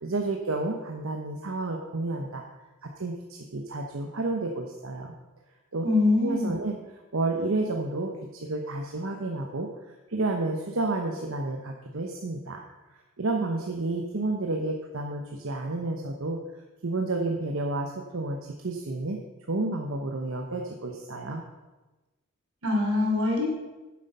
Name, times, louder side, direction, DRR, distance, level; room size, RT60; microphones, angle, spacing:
voice 1, 0.0-2.4 2.8-5.1 5.7-5.8 6.2-6.8 7.1-9.7 10.1-12.6 13.2-16.4 16.8-18.4 18.6-19.2 19.5-21.4, right 2 dB, 70° right, 2 dB, 0.9 m, -30 dB
voice 2, 5.8-6.5 22.6-23.4, left 2 dB, 85° right, -1 dB, 3.3 m, -23 dB
9.7 x 7.6 x 5.5 m, 1.1 s
head